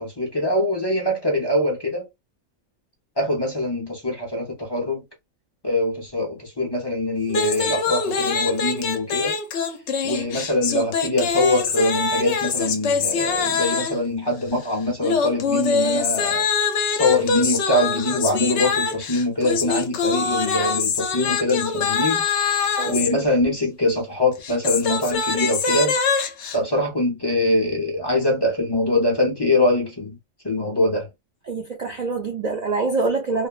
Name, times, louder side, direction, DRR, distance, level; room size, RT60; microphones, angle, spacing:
voice 1, 0.0-2.1 3.2-5.0 5.6-9.4 10.0-16.5 16.9-26.0 26.5-30.2 30.4-31.1, left 1 dB, 25° left, 0.6 m, -23 dB
sound 1, 7.3-14.1 15.0-23.1 24.3-26.6, left 5 dB, 70° left, 0.9 m, -24 dB
voice 2, 31.5-33.5, right 3 dB, 75° right, 0.3 m, -25 dB
3.0 x 2.1 x 2.3 m
omnidirectional pair, 1.3 m